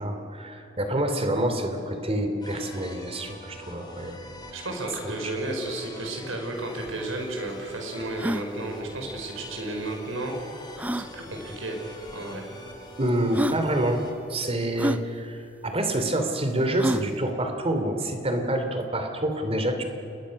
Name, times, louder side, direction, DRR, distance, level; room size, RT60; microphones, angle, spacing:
voice 1, 0.0-4.2 13.0-14.0 14.3-19.8, right 1 dB, 30° right, 6 dB, 2.9 m, -27 dB
sound 1, 2.4-14.1, left 1 dB, 20° left, 4.0 m, -45 dB
voice 2, 4.5-10.3 10.9-11.8 12.1-12.5, right 2 dB, 90° right, 2 dB, 5.6 m, -33 dB
sound 2, 6.6-6.7 6.9-7.0 7.5-7.6 8.1-8.5 9.8-9.9 10.8-11.1 12.1-12.2 12.9-13.0 13.3-13.6 14.8-15.0 16.8-17.1, right 1 dB, 10° right, 0.6 m, -28 dB
29.0 x 21.5 x 6.5 m, 2.8 s
head